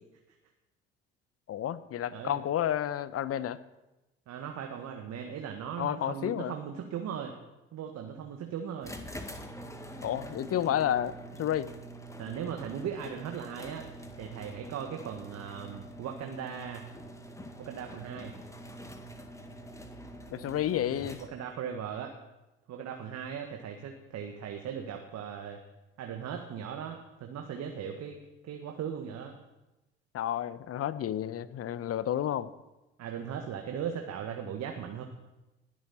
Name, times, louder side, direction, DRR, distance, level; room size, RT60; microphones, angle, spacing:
voice 1, 1.5-3.6 5.8-6.6 10.0-11.7 20.3-21.2 30.1-32.5, left 11 dB, 50° left, 16 dB, 1.0 m, -31 dB
voice 2, 2.1-2.4 4.3-7.4 7.7-9.0 12.2-13.8 14.2-16.8 17.6-18.3 21.3-22.1 22.7-25.6 26.0-28.2 28.4-29.4 33.0-35.0, right 8 dB, 55° right, 4 dB, 1.7 m, -38 dB
sound 1, 8.8-21.6, right 1 dB, 10° left, 1.9 m, -45 dB
20.5 x 11.0 x 4.3 m, 1.0 s
hypercardioid pair, 50°, 31 cm